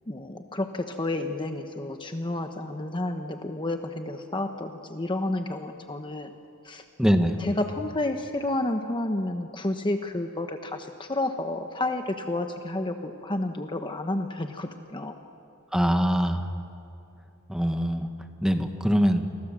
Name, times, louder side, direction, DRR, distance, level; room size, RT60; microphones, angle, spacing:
voice 1, 0.1-6.3 6.6-6.8 7.4-15.2, left 2 dB, 20° left, 6 dB, 1.0 m, -30 dB
voice 2, 7.0-7.4 15.7-16.5 17.5-18.1 18.4-19.3, equal, 5° right, 6 dB, 1.4 m, -23 dB
29.0 x 23.0 x 7.5 m, 2.6 s
head